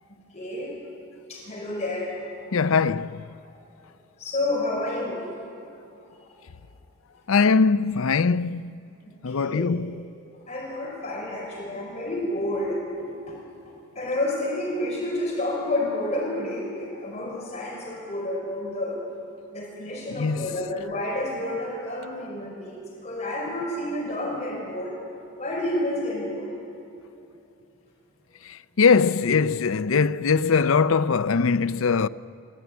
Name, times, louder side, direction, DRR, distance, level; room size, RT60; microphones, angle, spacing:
voice 1, 0.3-0.7 1.3-2.8 4.2-5.4 9.0-9.6 10.3-12.8 13.3-13.4 13.9-19.0 19.5-25.1 25.4-26.5, left 1 dB, 30° left, 5.0 m, -30 dB
voice 2, 2.5-3.2 7.3-8.8 9.2-10.0 20.1-20.6 28.4-32.1, left 5 dB, 70° left, 0.5 m, -21 dB
29.0 x 15.0 x 9.4 m
head